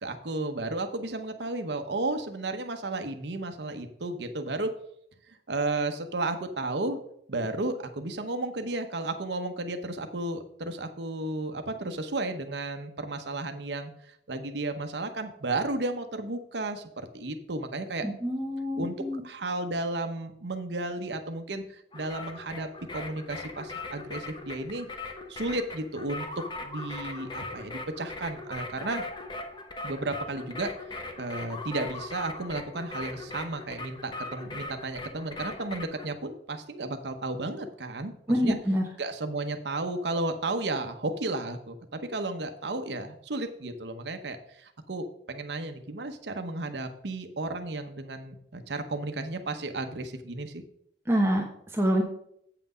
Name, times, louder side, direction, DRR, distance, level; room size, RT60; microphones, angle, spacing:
voice 1, 0.0-4.7 5.3-7.0 7.3-13.9 14.3-18.1 18.8-19.0 19.2-24.9 25.3-26.3 26.6-29.0 29.8-38.6 39.0-50.6, right 2 dB, 75° right, 7 dB, 0.9 m, -33 dB
voice 2, 18.0-19.2 38.3-38.8 51.1-51.5 51.7-52.0, equal, 15° right, 1 dB, 1.0 m, -26 dB
sound 1, 21.9-36.1, left 2 dB, 25° left, 1.0 m, -40 dB
8.4 x 5.9 x 5.5 m, 0.71 s
head